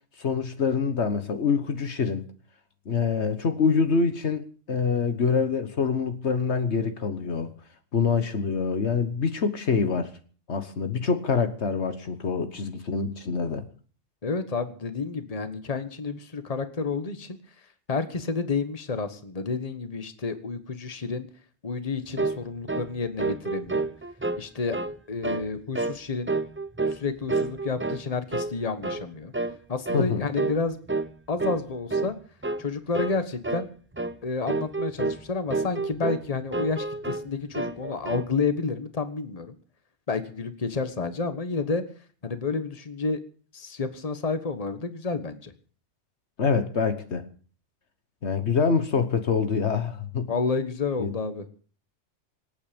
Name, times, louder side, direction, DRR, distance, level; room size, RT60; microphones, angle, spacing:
voice 1, 0.2-2.2 2.9-7.5 7.9-10.1 10.5-13.6 29.9-30.3 46.4-47.2 48.2-50.3 51.0-51.1, left 5 dB, 65° left, 1.5 m, -25 dB
voice 2, 14.2-17.4 17.9-21.3 21.6-23.9 24.4-24.8 25.1-26.3 26.9-29.3 29.7-30.8 31.3-32.1 32.6-33.7 34.2-39.5 40.1-41.8 42.2-43.2 43.5-45.5 50.3-51.4, left 4 dB, 30° left, 1.4 m, -30 dB
sound 1, 22.2-22.4 22.7-22.9 23.2-24.4 24.7-25.0 25.2-25.5 25.7-26.0 26.3-27.0 27.3-28.1 28.3-28.5 28.8-29.0 29.3-29.6 29.9-30.1 30.4-30.6 30.9-31.1 31.4-31.6 31.9-32.1 32.4-32.6 32.9-33.2 33.4-33.7 33.9-34.2 34.5-35.2 35.5-36.2 36.5-37.3 37.5-38.3, right 3 dB, 15° right, 0.4 m, -29 dB
26.0 x 8.8 x 5.2 m
omnidirectional pair, 1.2 m